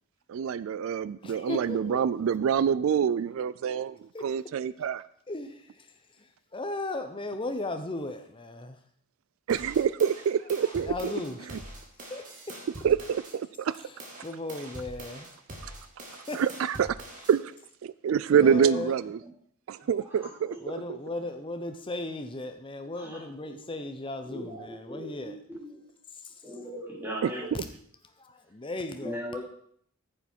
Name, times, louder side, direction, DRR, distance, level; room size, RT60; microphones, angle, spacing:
voice 1, 0.3-5.0 9.5-11.1 12.8-13.7 16.3-17.0 17.3-17.5 17.8-19.2 19.7-20.5 27.2-27.3, right 7 dB, 65° right, 16 dB, 0.3 m, -26 dB
voice 2, 1.2-2.0 4.1-4.3 5.3-8.8 10.6-12.6 13.8-15.3 15.6-15.8 16.1-16.4 18.3-18.9 19.8-19.9 20.6-25.4 28.2-29.2, left 2 dB, 25° left, 7 dB, 0.7 m, -37 dB
sound 1, 9.5-13.4 13.7-17.4, right 1 dB, 35° right, 2.0 m, -44 dB
voice 3, 20.0-20.6 23.0-23.6 24.2-25.3 25.6-25.7 26.4-27.7 29.0-29.4, equal, 10° right, -5 dB, 3.1 m, -39 dB
9.8 x 7.0 x 4.4 m, 0.63 s
head